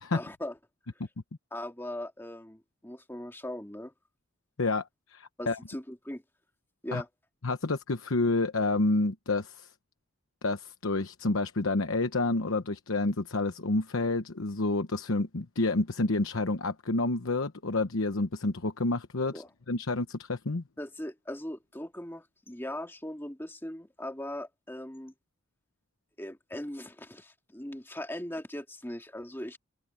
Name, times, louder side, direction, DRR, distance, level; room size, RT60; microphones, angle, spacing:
voice 1, 0.1-0.6 1.5-3.9 5.4-6.2 6.8-7.1 19.3-19.5 20.8-25.1 26.2-29.6, left 1 dB, 10° left, 2.2 m, -39 dB
voice 2, 5.1-5.6 6.9-7.0 7.4-9.7 10.4-20.6, left 2 dB, 75° left, 1.0 m, -29 dB
head